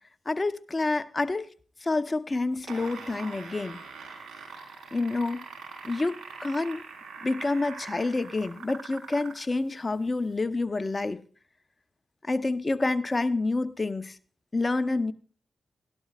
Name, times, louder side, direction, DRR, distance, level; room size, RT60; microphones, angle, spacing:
voice 1, 0.3-1.5 1.8-3.8 4.9-5.4 5.8-6.8 7.2-11.2 12.2-14.2 14.5-15.1, left 3 dB, 35° left, 0.8 m, -28 dB
sound 1, 2.5-9.5 10.3-10.4, right 5 dB, 80° right, 4.1 m, -43 dB
17.5 x 12.0 x 2.4 m
supercardioid pair, 40°, 0 cm